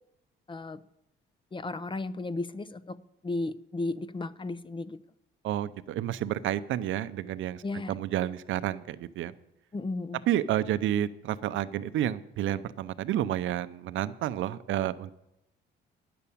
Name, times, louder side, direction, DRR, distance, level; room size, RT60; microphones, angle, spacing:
voice 1, 0.5-0.8 1.5-3.0 3.2-5.0 7.6-8.0 9.7-10.2, left 2 dB, 25° left, 16 dB, 0.5 m, -34 dB
voice 2, 5.4-9.3 10.3-15.1, right 12 dB, 80° right, 14 dB, 0.6 m, -30 dB
10.5 x 6.9 x 8.5 m, 0.84 s
cardioid pair, 90°, 20 cm